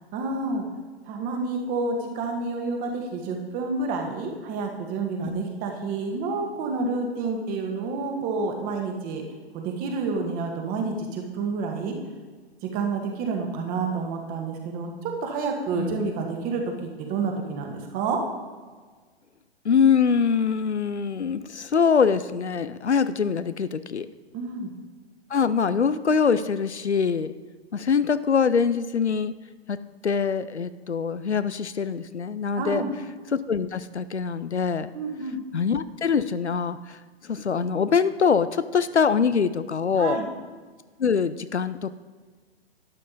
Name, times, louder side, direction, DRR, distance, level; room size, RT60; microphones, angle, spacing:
voice 1, 0.1-0.6 1.1-9.2 9.5-11.9 12.6-18.2 24.3-24.7 32.6-32.9 34.9-35.4 40.0-40.3, right 4 dB, 25° right, 3 dB, 1.7 m, -29 dB
voice 2, 15.7-16.1 19.6-24.1 25.3-27.3 27.7-29.3 29.7-29.8 30.0-32.8 33.3-34.9 35.5-37.0 37.3-40.2 41.0-41.9, left 6 dB, 85° left, 14 dB, 0.6 m, -23 dB
12.0 x 9.3 x 4.0 m, 1.5 s
figure-of-eight pair, 115°, 33 cm